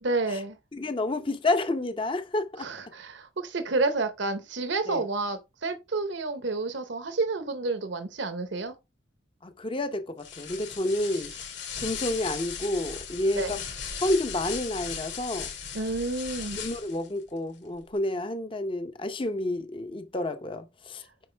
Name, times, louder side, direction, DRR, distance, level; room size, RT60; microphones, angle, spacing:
voice 1, 0.0-0.6 2.6-8.7 11.1-11.2 13.3-13.6 15.7-16.6, right 3 dB, 65° right, 0.9 m, -30 dB
voice 2, 0.7-2.7 4.9-5.0 9.4-11.3 11.8-13.6 14.0-15.5 16.6-21.0, left 1 dB, 25° left, 0.7 m, -29 dB
sound 1, 10.2-17.1, left 7 dB, 65° left, 2.4 m, -37 dB
7.7 x 5.4 x 3.3 m
head